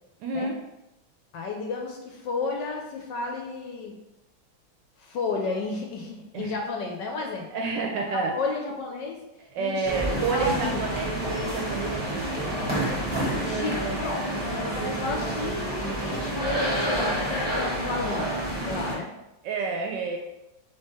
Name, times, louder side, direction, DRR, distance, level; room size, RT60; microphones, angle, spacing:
voice 1, 0.2-0.6 6.3-6.5 7.5-8.4 9.5-12.5 19.4-20.2, right 4 dB, 75° right, 2 dB, 1.1 m, -29 dB
voice 2, 1.3-3.9 5.0-7.5 8.3-9.2 9.6-10.8 13.4-14.2 14.6-18.3 18.6-19.1, left 4 dB, 70° left, 1 dB, 1.1 m, -32 dB
sound 1, 9.8-19.0, right 1 dB, 10° right, 0.5 m, -28 dB
3.5 x 3.5 x 4.2 m, 0.95 s
omnidirectional pair, 2.3 m